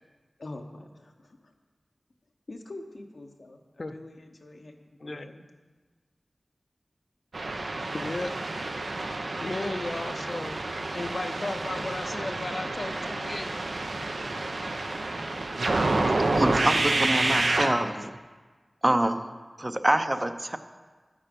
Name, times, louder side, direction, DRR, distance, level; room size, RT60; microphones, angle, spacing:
voice 1, 0.4-1.5 2.5-5.4, left 2 dB, 85° left, 3 dB, 0.9 m, -45 dB
voice 2, 5.0-5.3 7.9-8.3 9.4-10.6 10.9-13.5, left 2 dB, 55° left, 8 dB, 0.6 m, -34 dB
sound 1, 7.3-17.7, right 2 dB, 85° right, 0.7 m, -29 dB
voice 3, 16.4-18.1 18.8-19.2 19.6-20.6, right 1 dB, 25° right, 8 dB, 0.6 m, -25 dB
9.0 x 8.9 x 5.2 m, 1.4 s
wide cardioid pair, 60°, 0 cm